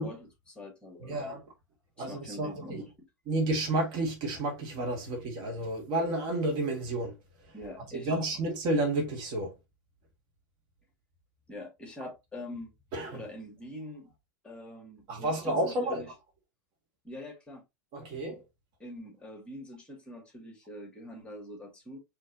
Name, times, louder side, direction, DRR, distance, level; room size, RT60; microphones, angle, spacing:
voice 1, 0.0-1.4 2.0-2.9 7.5-8.3 11.5-12.7 13.1-14.1 14.4-16.1 17.0-17.6 18.8-22.0, left 1 dB, 10° left, 2.2 m, -44 dB
voice 2, 1.0-1.4 2.0-2.8 3.3-7.1 7.9-9.5 12.9-13.2 15.1-16.0 17.9-18.4, right 1 dB, 45° right, 1.8 m, -31 dB
4.5 x 3.2 x 3.0 m
figure-of-eight pair, 90°, 10 cm